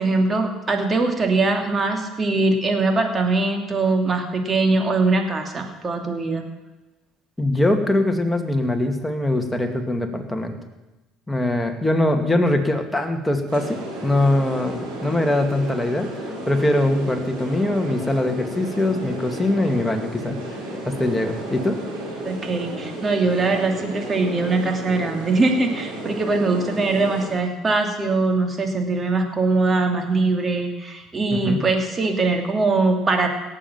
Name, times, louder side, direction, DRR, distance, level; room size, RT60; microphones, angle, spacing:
voice 1, 0.0-6.4 22.2-33.3, right 3 dB, 30° right, 4 dB, 2.7 m, -22 dB
voice 2, 7.4-10.6 11.3-16.1 16.5-20.4 20.9-21.8 31.3-31.6, left 1 dB, 10° left, 4 dB, 2.3 m, -22 dB
sound 1, 13.5-27.3, right 1 dB, 85° right, 5.3 m, -33 dB
18.0 x 7.6 x 7.4 m, 1.1 s
supercardioid pair, 75°, 0 cm